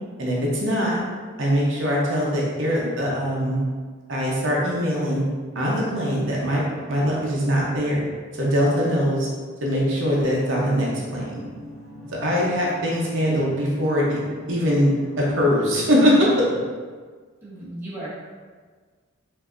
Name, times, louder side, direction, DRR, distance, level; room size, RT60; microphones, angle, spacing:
voice 1, 0.2-1.0 1.4-3.7 4.1-5.2 5.5-6.6 6.9-8.0 8.4-9.3 9.6-11.4 12.2-14.2 14.5-16.3, equal, 65° right, -4 dB, 0.8 m, -22 dB
sound 1, 11.1-16.7, equal, 15° left, 1.2 m, -41 dB
voice 2, 17.4-18.2, right 1 dB, 10° right, -9 dB, 0.9 m, -35 dB
4.8 x 2.7 x 2.5 m, 1.5 s
head